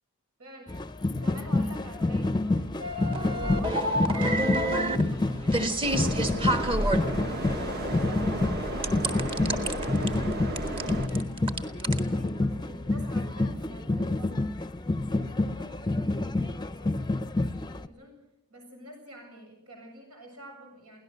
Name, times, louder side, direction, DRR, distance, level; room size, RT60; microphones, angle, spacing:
voice 1, 0.4-0.7 1.1-2.8 3.2-10.2 10.5-14.3 15.1-18.2 18.5-21.0, right 1 dB, 80° right, 2 dB, 7.3 m, -48 dB
sound 1, 0.7-17.9, left 2 dB, 20° left, 0.6 m, -28 dB
sound 2, 2.8-7.0 8.8-10.1 10.6-12.0, right 1 dB, 25° right, 1.4 m, -28 dB
sound 3, 5.8-11.1, right 1 dB, 45° right, 1.7 m, -33 dB
23.0 x 17.5 x 6.7 m, 0.87 s
head